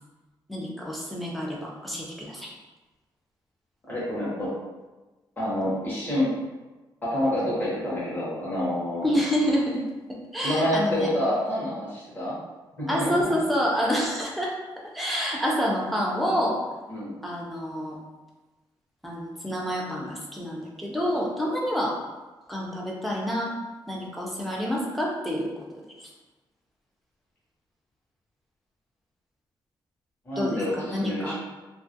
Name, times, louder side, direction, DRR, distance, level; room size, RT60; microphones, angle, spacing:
voice 1, 0.5-2.5 9.0-9.8 10.3-11.1 12.9-14.5 14.9-16.6 17.2-18.0 19.0-22.0 22.5-23.5 23.9-25.5 26.0-26.1 30.3-31.3, equal, ahead, -3 dB, 0.4 m, -28 dB
voice 2, 3.9-4.5 5.4-6.3 7.0-9.1 10.4-12.4 12.8-13.1 16.9-17.1 30.3-31.3, left 1 dB, 20° left, -9 dB, 0.8 m, -27 dB
2.8 x 2.3 x 2.7 m, 1.2 s
wide cardioid pair, 175°, 8 cm